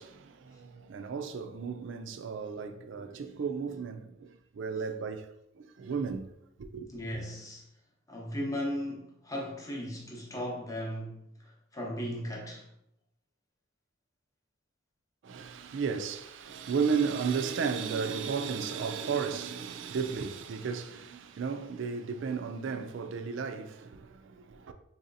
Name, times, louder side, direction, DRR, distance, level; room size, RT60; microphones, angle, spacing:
voice 1, 0.0-4.3 4.5-5.3 5.8-6.3 6.6-6.9 15.2-24.7, right 6 dB, 65° right, 0.3 m, -34 dB
voice 2, 6.9-7.6 8.1-12.7, equal, 15° left, 0.7 m, -37 dB
3.8 x 2.7 x 2.5 m
head